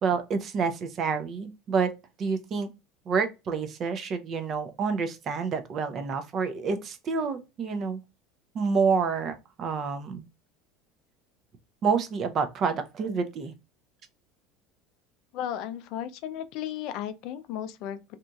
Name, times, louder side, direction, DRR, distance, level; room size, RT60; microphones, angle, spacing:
voice 1, 0.0-1.9 2.2-2.7 3.1-8.0 8.5-10.2 11.8-13.5, right 5 dB, 40° right, 0.5 m, -28 dB
voice 2, 15.3-18.2, left 10 dB, 65° left, 0.4 m, -35 dB
2.9 x 2.5 x 2.2 m
supercardioid pair, 110°, 0 cm